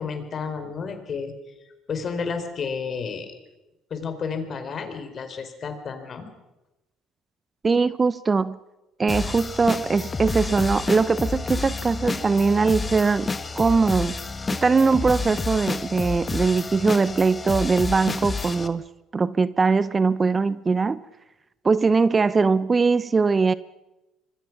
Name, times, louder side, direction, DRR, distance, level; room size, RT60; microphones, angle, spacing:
voice 1, 0.0-1.3 1.9-3.3 3.9-6.3, left 5 dB, 45° left, 4.1 m, -31 dB
voice 2, 7.6-8.6 9.0-14.2 14.6-18.8 19.1-21.0 21.6-23.5, right 4 dB, 30° right, 0.8 m, -21 dB
sound 1, 9.1-18.7, left 4 dB, 30° left, 1.7 m, -30 dB
25.5 x 21.5 x 6.0 m
hypercardioid pair, 65°, 0 cm